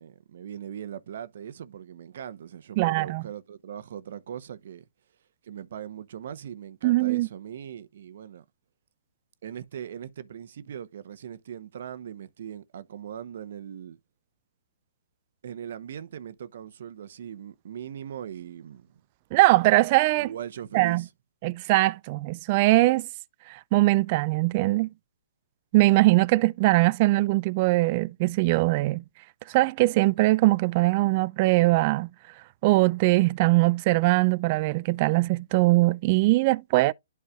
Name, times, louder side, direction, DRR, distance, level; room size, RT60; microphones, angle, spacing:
voice 1, 0.0-4.8 5.4-8.4 9.4-14.0 15.4-19.0 20.2-21.1, right 9 dB, 60° right, 0.9 m, -40 dB
voice 2, 2.8-3.2 6.8-7.3 19.3-20.3 20.7-21.0 21.4-23.1 23.5-24.9 25.7-29.0 29.5-32.1 32.6-36.9, right 20 dB, 35° right, 0.3 m, -21 dB
11.5 x 4.7 x 2.4 m
hypercardioid pair, 135°, 0 cm